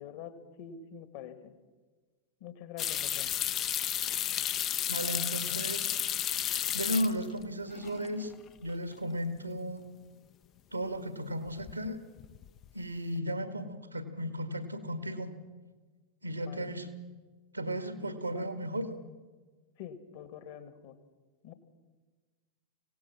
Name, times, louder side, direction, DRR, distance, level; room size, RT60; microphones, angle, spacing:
voice 1, 0.0-1.5 2.4-3.3 16.4-16.7 18.3-18.4 19.8-21.0 21.4-21.5, left 8 dB, 50° left, 11 dB, 2.0 m, -46 dB
sound 1, 2.8-7.4 7.7-8.3 8.7-8.8 11.5-11.9 12.2-12.7, left 11 dB, 30° left, 0.6 m, -32 dB
voice 2, 4.9-6.0 6.7-8.3 8.6-9.8 10.7-12.0 12.7-15.3 16.2-16.9 17.5-18.9, equal, 85° right, 10 dB, 1.9 m, -35 dB
25.0 x 17.5 x 6.2 m, 1.3 s
figure-of-eight pair, 90°, 0 cm